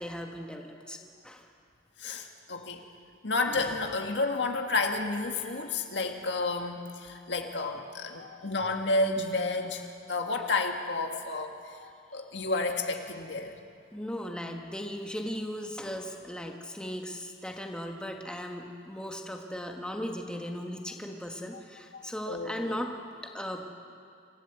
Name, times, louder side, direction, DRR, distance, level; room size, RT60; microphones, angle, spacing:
voice 1, 0.0-1.5 13.9-22.9 23.2-23.7, equal, 5° left, 2 dB, 1.4 m, -37 dB
voice 2, 2.0-2.8 3.2-13.6 21.9-22.8, left 3 dB, 75° left, 4 dB, 1.8 m, -31 dB
26.0 x 14.5 x 8.0 m, 2.3 s
head